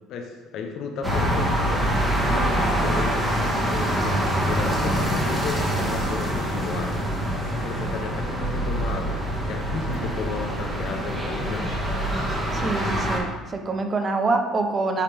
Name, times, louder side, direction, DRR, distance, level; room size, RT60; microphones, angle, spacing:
voice 1, 0.1-1.9 2.3-3.2 3.7-7.1 7.6-11.8, left 5 dB, 65° left, 4 dB, 0.8 m, -34 dB
sound 1, 1.0-13.2, equal, 15° right, 1.7 m, -25 dB
voice 2, 12.5-15.0, right 3 dB, 35° right, 5 dB, 0.8 m, -25 dB
8.4 x 3.4 x 3.5 m, 1.2 s
supercardioid pair, 75°, 0 cm